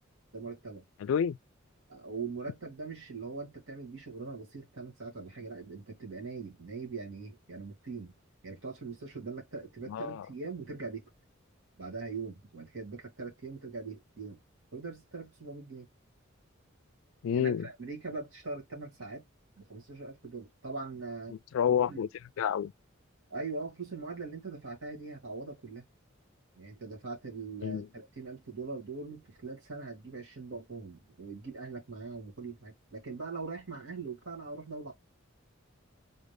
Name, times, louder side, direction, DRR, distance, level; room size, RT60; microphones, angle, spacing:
voice 1, 0.3-0.8 1.9-8.1 8.4-11.0 11.8-14.4 14.7-15.9 17.3-19.2 19.7-21.3 21.9-22.0 23.3-25.9 26.6-34.9, right 4 dB, 70° right, 2.6 m, -41 dB
voice 2, 1.0-1.4 9.9-10.3 17.2-17.7 21.5-22.1 22.4-22.7 27.6-27.9, left 8 dB, 70° left, 0.3 m, -28 dB
4.2 x 2.6 x 3.4 m
head